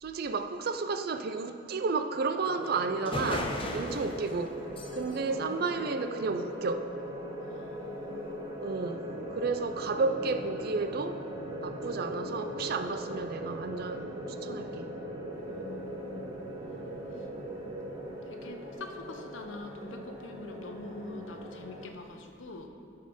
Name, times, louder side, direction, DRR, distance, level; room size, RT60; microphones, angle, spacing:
voice 1, 0.0-4.6 4.9-6.9 8.6-9.0 9.3-11.2 11.6-14.1 14.4-14.9, right 4 dB, 50° right, 0.4 m, -32 dB
sound 1, 2.5-21.9, equal, 25° right, 0.9 m, -41 dB
sound 2, 2.6-2.7 3.0-6.5, left 1 dB, 30° left, 0.7 m, -38 dB
voice 2, 5.2-5.8 7.4-8.4 15.4-16.3 16.7-16.8 17.1-17.3 18.2-22.7, left 2 dB, 85° left, 0.8 m, -45 dB
sound 3, 8.9-18.1, right 3 dB, 85° right, 0.9 m, -43 dB
12.5 x 4.3 x 5.1 m
head